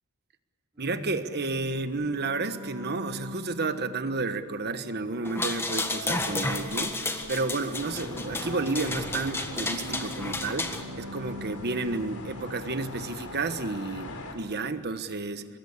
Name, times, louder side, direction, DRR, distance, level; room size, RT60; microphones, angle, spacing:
sound 1, 0.7-13.3, equal, 20° right, 6.0 m, -44 dB
voice 1, 0.8-15.5, right 3 dB, 45° right, 10 dB, 1.3 m, -31 dB
sound 2, 5.2-10.8, left 2 dB, 10° left, 1.5 m, -32 dB
sound 3, 7.7-14.3, left 1 dB, 90° left, 3.7 m, -41 dB
24.5 x 21.0 x 8.3 m, 2.2 s
head